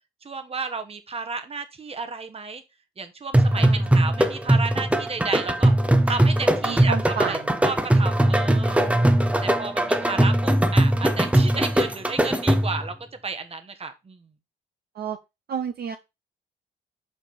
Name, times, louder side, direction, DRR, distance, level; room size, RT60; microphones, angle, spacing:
voice 1, 0.2-2.6 3.0-5.7 6.1-8.8 9.4-12.9 13.2-14.3, right 4 dB, 30° right, 8 dB, 1.2 m, -32 dB
sound 1, 3.3-12.9, right 1 dB, 5° right, 0.7 m, -20 dB
voice 2, 3.5-3.9 6.6-7.7 8.8-9.2 10.0-10.2 14.9-15.2 15.5-16.0, right 6 dB, 50° right, 6 dB, 0.7 m, -32 dB
5.4 x 4.5 x 4.7 m, 0.24 s
cardioid pair, 90°, 20 cm